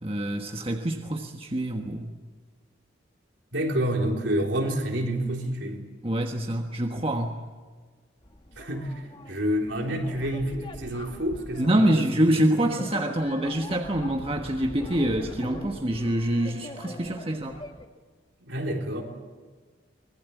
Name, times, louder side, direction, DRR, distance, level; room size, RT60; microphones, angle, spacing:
voice 1, 0.0-2.1 6.0-7.4 11.6-17.6, right 1 dB, 30° right, 3 dB, 1.4 m, -26 dB
voice 2, 3.5-5.8 8.6-12.0 12.6-12.7 18.4-19.0, equal, 70° right, 1 dB, 3.9 m, -28 dB
sound 1, 8.2-17.9, left 1 dB, 25° left, 1.4 m, -43 dB
24.5 x 21.0 x 8.4 m, 1.5 s
head